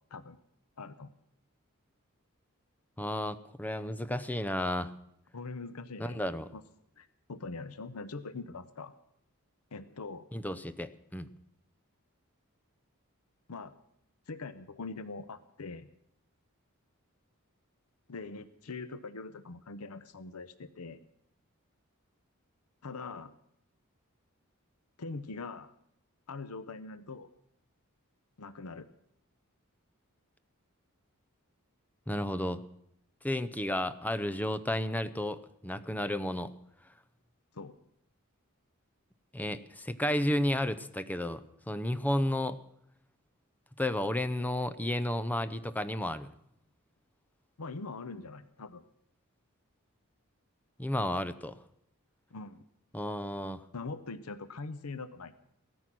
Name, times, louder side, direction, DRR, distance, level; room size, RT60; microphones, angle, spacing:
voice 1, 0.8-1.1 5.3-6.2 6.5-6.6 7.0-8.9 9.7-10.3 13.5-13.7 14.3-15.9 18.1-21.0 22.8-23.3 25.0-25.7 26.3-27.3 28.4-28.9 37.5-37.8 47.6-48.8 52.3-52.6 53.7-55.3, left 3 dB, 85° left, 14 dB, 0.8 m, -42 dB
voice 2, 3.0-4.9 6.0-6.5 10.3-11.3 32.1-32.6 33.2-36.5 39.3-42.6 43.8-46.3 50.8-51.6 52.9-53.6, left 1 dB, 10° left, 13 dB, 0.6 m, -32 dB
17.0 x 13.5 x 6.1 m, 0.73 s
head